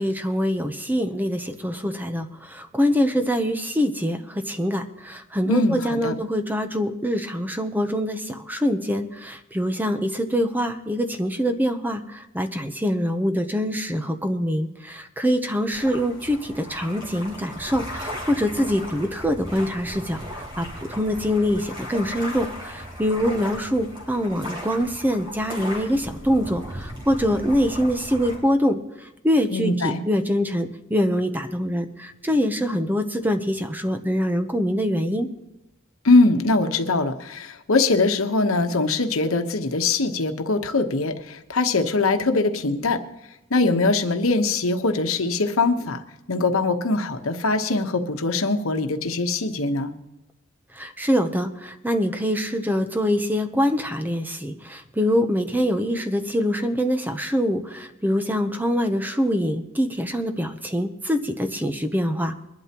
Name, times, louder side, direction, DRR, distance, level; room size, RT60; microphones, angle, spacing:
voice 1, 0.0-20.2 20.6-28.8 29.2-35.3 50.8-62.4, equal, 10° right, 7 dB, 0.8 m, -24 dB
voice 2, 5.5-6.1 29.5-30.0 36.0-43.0 43.5-46.0 46.3-49.9, left 3 dB, 80° left, 7 dB, 1.1 m, -22 dB
sound 1, 15.7-28.4, equal, 25° right, 3.7 m, -37 dB
22.0 x 11.5 x 3.0 m, 0.93 s
head